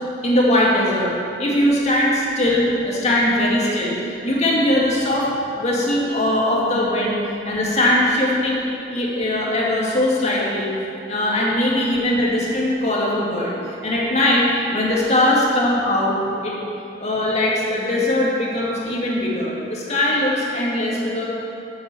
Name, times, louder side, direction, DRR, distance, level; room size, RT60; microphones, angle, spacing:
voice 1, 0.2-1.1 1.4-5.3 5.6-7.2 7.4-8.6 8.9-10.7 11.1-13.5 13.8-14.4 14.7-16.2 16.4-16.5 17.0-21.2, left 1 dB, 35° left, -4 dB, 2.1 m, -20 dB
8.3 x 7.5 x 7.0 m, 2.7 s
head